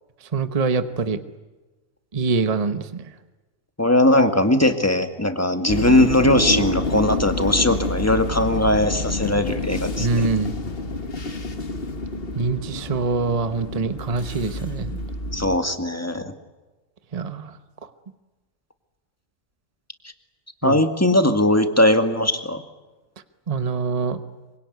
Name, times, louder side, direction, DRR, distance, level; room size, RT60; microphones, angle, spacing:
voice 1, 0.3-1.2 2.1-3.0 10.0-10.5 12.3-15.0 17.1-17.5 20.6-20.8 23.5-24.2, right 4 dB, 30° right, 10 dB, 1.1 m, -24 dB
voice 2, 3.8-10.1 15.3-16.3 20.6-22.6, left 1 dB, 10° left, 7 dB, 2.1 m, -19 dB
sound 1, 5.7-15.6, left 2 dB, 45° left, 1.9 m, -28 dB
26.0 x 24.5 x 9.5 m, 1.2 s
omnidirectional pair, 1.4 m